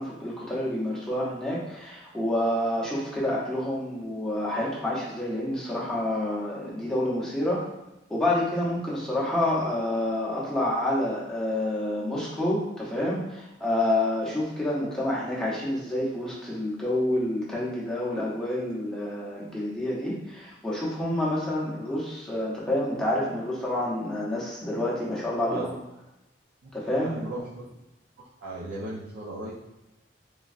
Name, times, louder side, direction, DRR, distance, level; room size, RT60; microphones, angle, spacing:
voice 1, 0.0-7.7 8.1-25.7 26.7-27.1, left 1 dB, 5° left, -7 dB, 0.6 m, -28 dB
voice 2, 27.0-27.5 28.2-29.5, right 2 dB, 80° right, -7 dB, 0.5 m, -36 dB
3.2 x 2.2 x 2.4 m, 0.95 s
head